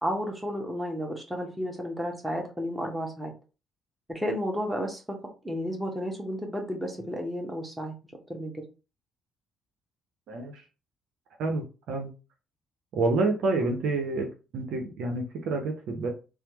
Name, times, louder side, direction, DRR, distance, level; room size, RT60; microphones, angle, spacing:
voice 1, 0.0-3.3 4.1-5.2 5.4-7.9 8.3-8.5, equal, 10° right, 1 dB, 1.3 m, -32 dB
voice 2, 10.3-10.6 11.4-12.1 12.9-14.3 14.5-16.1, right 3 dB, 70° right, 3 dB, 0.7 m, -28 dB
3.2 x 2.0 x 3.0 m, 0.32 s
hypercardioid pair, 55°, 0 cm